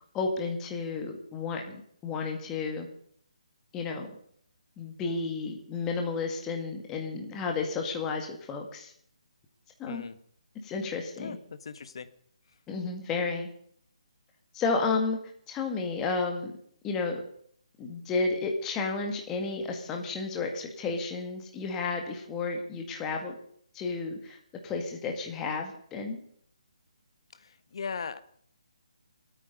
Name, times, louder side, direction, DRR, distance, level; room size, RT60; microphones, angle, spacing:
voice 1, 0.1-2.9 3.7-4.1 4.8-8.9 9.8-10.0 10.6-11.4 12.7-13.5 14.5-15.2 15.5-16.5 16.8-17.2 17.8-23.3 23.7-24.4 24.6-26.2, left 4 dB, 10° left, 3 dB, 1.8 m, -32 dB
voice 2, 11.2-12.1 27.3-28.2, left 5 dB, 50° left, 13 dB, 1.4 m, -39 dB
25.5 x 9.0 x 5.3 m, 0.63 s
hypercardioid pair, 170°, 4 cm